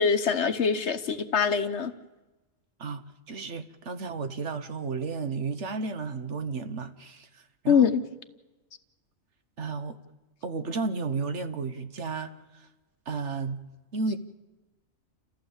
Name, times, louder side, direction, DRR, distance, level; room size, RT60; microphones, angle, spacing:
voice 1, 0.0-1.9 7.7-8.0, left 6 dB, 60° left, 10 dB, 1.2 m, -23 dB
voice 2, 2.8-7.3 7.6-7.9 9.6-10.0 10.4-12.7 13.1-13.6 13.9-14.2, right 4 dB, 60° right, 9 dB, 1.4 m, -33 dB
29.0 x 14.5 x 7.3 m, 1.1 s
omnidirectional pair, 1.4 m